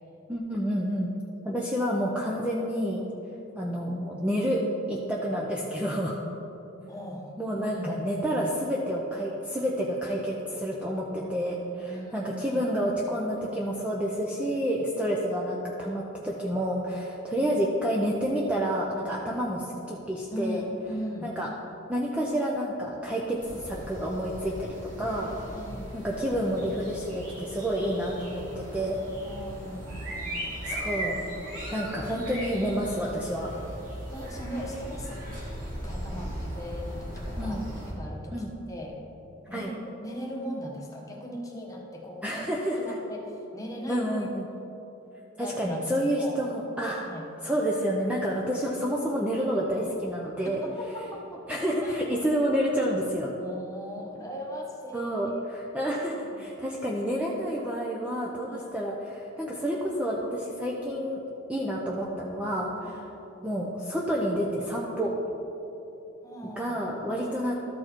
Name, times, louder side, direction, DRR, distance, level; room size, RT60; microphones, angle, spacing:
voice 1, 0.3-1.1 1.4-3.1 3.6-4.6 4.9-6.1 7.4-20.7 21.2-21.5 21.9-25.4 25.9-29.0 30.6-31.2 31.7-33.5 37.4-37.7 38.3-38.5 39.5-39.7 42.2-42.8 43.9-44.4 45.4-47.0 47.4-50.6 51.5-53.3 54.9-61.2 61.5-63.1 63.4-65.1 66.6-67.5, equal, 5° right, -4 dB, 0.6 m, -29 dB
voice 2, 6.8-7.3 7.7-8.5 11.8-12.7 20.3-21.3 25.5-25.9 29.2-30.4 34.0-35.3 35.8-39.0 39.5-42.4 42.8-44.0 45.4-46.4 46.9-47.3 50.4-52.1 53.4-55.1 56.2-56.4 58.5-58.7 62.8-63.1 66.2-66.8, equal, 15° left, -1 dB, 1.1 m, -39 dB
Blackbird Crystal Palace, 23.4-37.9, equal, 45° right, 1.8 m, -38 dB
13.0 x 4.6 x 4.4 m, 2.9 s
head